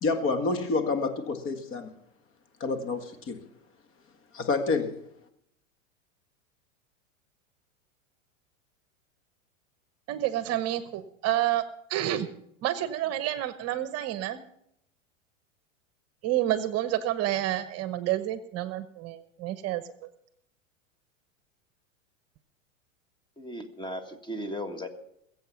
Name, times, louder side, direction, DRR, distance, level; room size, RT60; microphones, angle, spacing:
voice 1, 0.0-1.9 2.6-3.4 4.3-5.0, left 3 dB, 35° left, 8 dB, 1.8 m, -28 dB
voice 2, 10.1-11.6 11.9-12.3 12.6-14.4 16.2-19.8, right 13 dB, 40° right, 13 dB, 1.0 m, -29 dB
voice 3, 23.4-24.9, equal, 10° left, 9 dB, 1.9 m, -36 dB
21.0 x 8.0 x 5.8 m, 0.74 s
hypercardioid pair, 105°, 39 cm